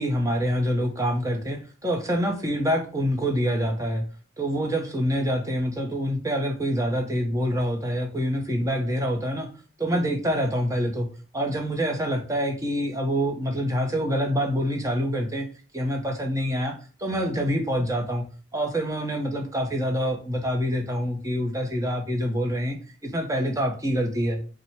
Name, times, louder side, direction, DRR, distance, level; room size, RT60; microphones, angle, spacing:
voice 1, 0.0-4.0 4.4-9.5 9.8-11.1 11.3-15.5 15.7-18.2 18.5-22.8 23.0-24.4, equal, 15° right, 3 dB, 0.7 m, -26 dB
4.2 x 2.1 x 4.3 m, 0.37 s
head